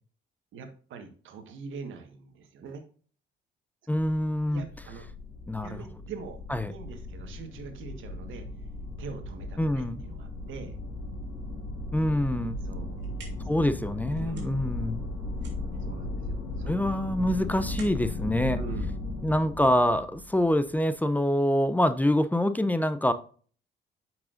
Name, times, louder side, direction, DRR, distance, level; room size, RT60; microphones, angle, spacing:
voice 1, 0.5-2.8 4.5-5.1 5.6-6.4 6.7-8.5 9.0-10.8 12.6-13.0 13.4-13.5 14.1-14.5 15.8-16.7 18.5-19.0, right 5 dB, 80° right, 1.6 m, -43 dB
voice 2, 3.9-4.6 5.5-5.9 6.5-6.7 9.6-10.0 11.9-12.6 13.5-15.0 16.7-18.6 19.2-23.1, left 1 dB, 10° left, 0.6 m, -25 dB
sound 1, 4.2-21.0, left 2 dB, 90° left, 3.7 m, -36 dB
sound 2, 12.7-19.6, right 5 dB, 65° right, 2.9 m, -54 dB
8.4 x 6.1 x 2.6 m
cardioid pair, 90°, 20 cm